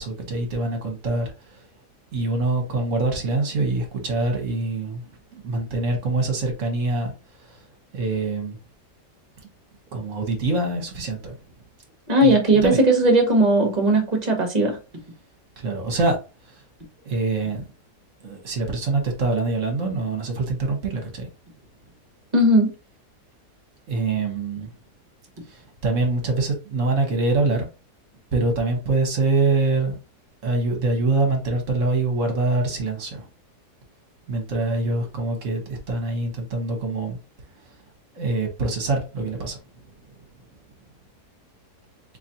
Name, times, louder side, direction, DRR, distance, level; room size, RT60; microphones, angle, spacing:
voice 1, 0.0-1.7 2.1-7.1 7.4-7.6 7.9-8.6 9.9-11.4 12.2-12.8 15.6-16.2 16.5-16.6 17.0-17.6 18.2-21.3 23.9-24.7 25.5-27.7 28.3-30.0 30.4-33.3 34.3-37.2 38.1-39.9, right 3 dB, 50° right, 1.3 m, -24 dB
voice 2, 12.1-14.8 22.3-22.7, right 1 dB, 30° right, 1.1 m, -18 dB
3.9 x 3.0 x 2.7 m
omnidirectional pair, 1.8 m